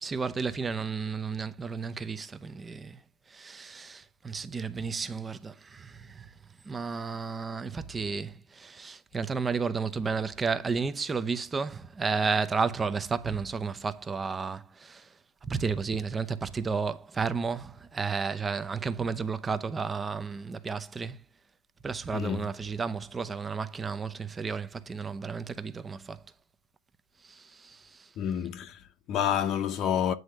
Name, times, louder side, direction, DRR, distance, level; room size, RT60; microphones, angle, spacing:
voice 1, 0.0-3.0 3.3-6.3 6.7-15.1 15.4-21.2 21.8-26.2 27.2-28.1, right 5 dB, 15° right, 0.7 m, -32 dB
voice 2, 22.1-22.5 28.2-30.1, left 9 dB, 35° left, 0.8 m, -29 dB
9.4 x 3.5 x 6.5 m
supercardioid pair, 135°, 0 cm